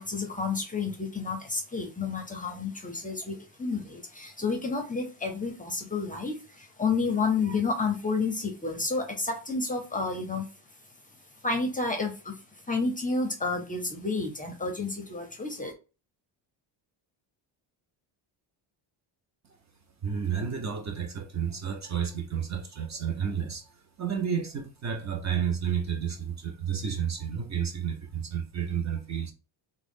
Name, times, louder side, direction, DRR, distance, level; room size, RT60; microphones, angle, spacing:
voice 1, 0.0-6.3 6.8-10.4 11.4-12.3 12.7-15.7, left 4 dB, 15° left, 0.5 m, -30 dB
voice 2, 20.0-29.3, right 7 dB, 35° right, 0.5 m, -31 dB
3.5 x 2.1 x 3.5 m
cardioid pair, 135°, 49 cm